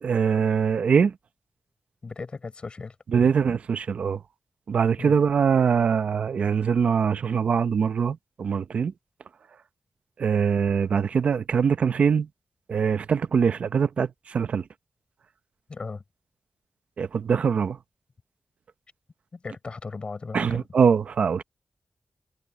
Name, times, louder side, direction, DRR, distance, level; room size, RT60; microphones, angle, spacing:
voice 1, 0.0-1.1 3.1-4.2 4.7-8.9 10.2-12.3 12.7-14.6 17.0-17.8 20.3-21.4, right 6 dB, 85° right, 0.8 m, -23 dB
voice 2, 2.0-3.0 5.0-5.1 15.7-16.0 19.3-20.6, left 4 dB, 55° left, 5.6 m, -37 dB
cardioid pair, 70°, 2 cm